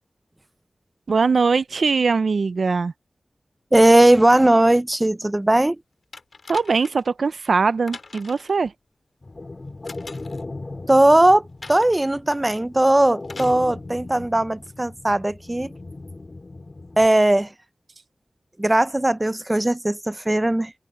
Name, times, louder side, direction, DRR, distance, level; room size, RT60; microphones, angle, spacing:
voice 1, 1.1-2.9 6.5-8.7, right 4 dB, 80° right, 0.4 m, -21 dB
voice 2, 3.7-5.8 10.9-11.4 11.7-15.7 17.0-17.5 18.6-20.7, right 1 dB, 20° right, 0.5 m, -18 dB
sound 1, 6.1-7.1 7.9-8.6 9.8-10.4 11.6-12.0 13.2-13.6 14.7-14.8, left 3 dB, 65° left, 2.1 m, -41 dB
sound 2, 9.2-17.1, left 2 dB, 40° left, 3.3 m, -38 dB
open air
wide cardioid pair, 85°, 0 cm